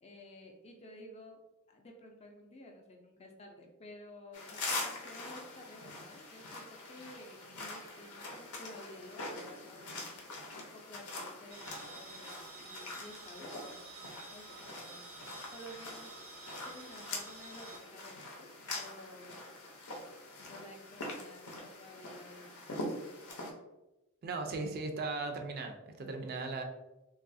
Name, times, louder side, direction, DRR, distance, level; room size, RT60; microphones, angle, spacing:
voice 1, 0.0-1.4 1.7-15.0 15.5-16.4 16.7-19.4 20.5-23.3, left 1 dB, 30° left, 2 dB, 0.4 m, -53 dB
sound 1, 4.3-23.5, left 2 dB, 90° left, 0.6 m, -44 dB
sound 2, 11.5-17.8, right 4 dB, 85° right, 0.7 m, -51 dB
voice 2, 24.2-26.6, right 3 dB, 45° right, 4 dB, 0.3 m, -37 dB
2.9 x 2.3 x 2.6 m, 0.99 s
head